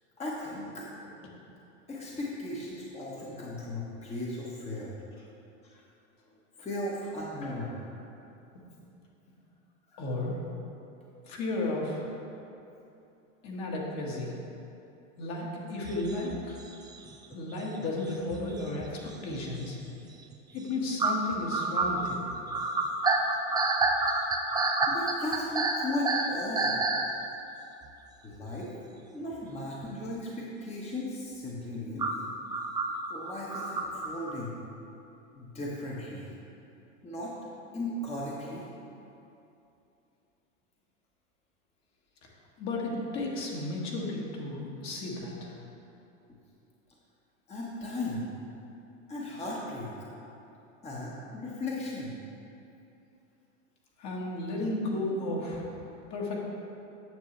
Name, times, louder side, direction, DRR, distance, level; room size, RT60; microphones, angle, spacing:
voice 1, 0.2-0.9 1.9-4.9 5.6-5.8 6.6-7.8 9.9-10.0 24.9-26.8 28.2-28.7 29.1-32.1 33.1-34.5 35.3-36.3 37.0-37.3 37.7-38.7 47.5-48.3 49.1-50.1 50.8-52.1, left 1 dB, 15° left, -5 dB, 1.1 m, -36 dB
voice 2, 10.0-10.4 11.3-12.1 13.4-14.4 15.2-16.6 17.3-19.8 20.5-22.3 42.2-42.3 42.6-45.6 54.0-55.7 56.1-56.4, left 2 dB, 45° left, -3 dB, 1.7 m, -33 dB
sound 1, 15.9-17.5 17.8-19.4 19.8-20.0 20.3-20.4 21.0-27.1 27.8-27.9 29.8-29.9 32.0-34.3, right 3 dB, 10° right, 0.4 m, -29 dB
9.2 x 6.7 x 3.3 m, 2.8 s
hypercardioid pair, 100°, 38 cm